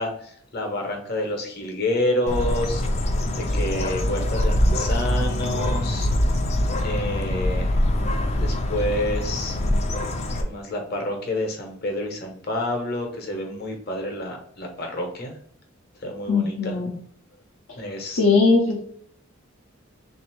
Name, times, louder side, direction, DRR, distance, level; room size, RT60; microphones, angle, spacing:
voice 1, 0.0-2.8 3.4-6.1 6.8-7.8 8.4-9.6 10.4-15.3 16.0-16.7 17.8-18.2, left 1 dB, 50° left, 2 dB, 0.9 m, -28 dB
Bird, 2.3-10.4, left 1 dB, 30° left, 0.4 m, -24 dB
voice 2, 16.3-16.9 18.2-18.8, left 4 dB, 70° left, -2 dB, 0.7 m, -19 dB
3.4 x 2.7 x 4.4 m, 0.62 s
head